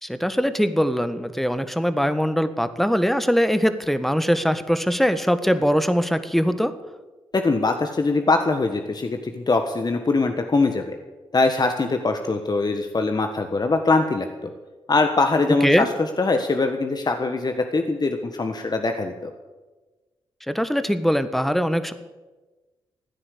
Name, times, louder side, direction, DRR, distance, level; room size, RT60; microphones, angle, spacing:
voice 1, 0.0-6.7 15.6-15.9 20.5-21.9, equal, ahead, 11 dB, 1.6 m, -22 dB
voice 2, 7.3-11.0 11.3-14.5 14.9-15.9 16.2-19.3, left 3 dB, 40° left, 6 dB, 1.5 m, -22 dB
15.5 x 9.8 x 8.5 m, 1.2 s
hypercardioid pair, 40°, 11 cm